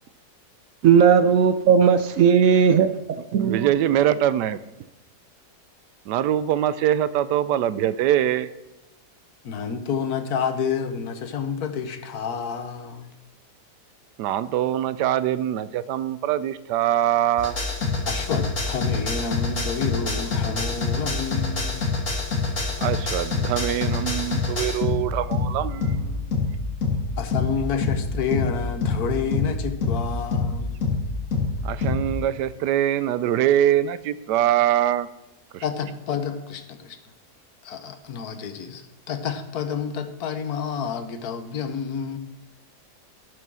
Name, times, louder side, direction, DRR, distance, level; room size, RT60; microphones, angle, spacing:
voice 1, 0.8-3.7, right 7 dB, 65° right, 10 dB, 0.9 m, -17 dB
voice 2, 3.4-4.6 6.1-8.5 14.2-17.6 22.8-26.3 31.6-35.1 35.5-35.6, right 11 dB, 90° right, 14 dB, 1.2 m, -23 dB
voice 3, 9.4-13.1 18.0-21.9 27.2-30.8 35.6-37.0 37.6-42.2, left 6 dB, 70° left, 8 dB, 1.4 m, -29 dB
sound 1, 17.4-32.1, left 3 dB, 50° left, 2.3 m, -26 dB
13.5 x 6.3 x 6.2 m, 0.97 s
omnidirectional pair, 1.7 m